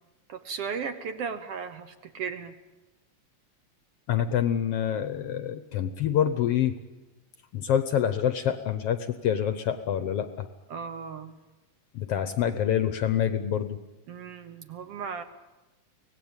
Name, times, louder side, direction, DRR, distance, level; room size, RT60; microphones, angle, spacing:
voice 1, 0.3-2.5 10.7-11.4 14.1-15.2, right 6 dB, 65° right, 9 dB, 1.7 m, -36 dB
voice 2, 4.1-6.8 7.5-10.5 11.9-13.8, left 9 dB, 65° left, 11 dB, 1.6 m, -26 dB
24.5 x 18.0 x 8.9 m, 1.1 s
omnidirectional pair, 3.4 m